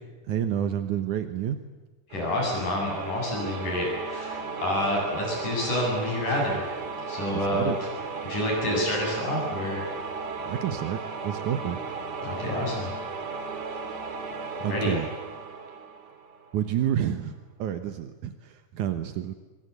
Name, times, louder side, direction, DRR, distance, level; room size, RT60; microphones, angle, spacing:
voice 1, 0.3-1.6 7.5-7.8 10.4-11.8 14.6-15.1 16.5-17.3 17.6-19.4, right 10 dB, 75° right, 8 dB, 2.6 m, -29 dB
voice 2, 2.1-6.7 7.1-7.7 8.2-9.8 12.2-12.9 14.6-15.0, left 1 dB, 80° left, 0 dB, 9.6 m, -28 dB
sound 1, 2.1-16.7, right 4 dB, 40° right, 2.0 m, -35 dB
25.0 x 23.5 x 8.3 m, 1.2 s
omnidirectional pair, 3.6 m